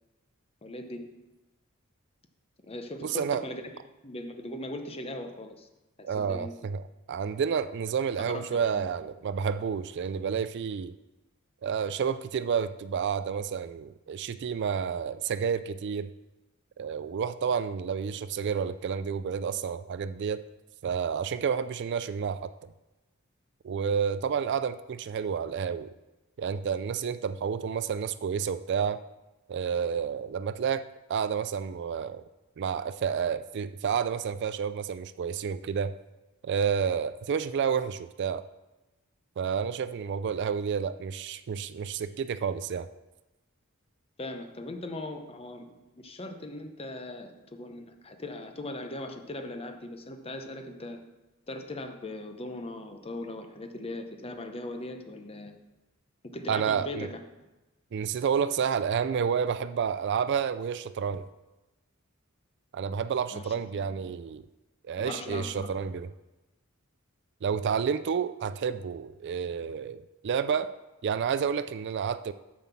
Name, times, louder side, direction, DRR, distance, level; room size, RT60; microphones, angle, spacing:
voice 1, 0.6-1.1 2.6-3.7 4.0-5.7 6.0-6.5 8.2-8.9 44.2-51.0 51.5-55.6 56.3-57.5 63.3-63.5 64.0-64.1 65.0-65.7, left 1 dB, 25° left, 6 dB, 0.8 m, -39 dB
voice 2, 3.0-3.4 6.0-10.9 11.6-16.1 16.8-20.4 20.8-22.5 23.6-25.9 26.4-29.0 29.5-30.8 31.1-32.2 32.6-35.9 36.4-38.4 39.4-42.9 56.5-57.1 57.9-61.3 62.7-64.4 64.8-66.1 67.4-70.7 71.0-72.3, right 7 dB, 55° right, 13 dB, 0.3 m, -30 dB
7.2 x 5.9 x 7.1 m, 1.1 s
head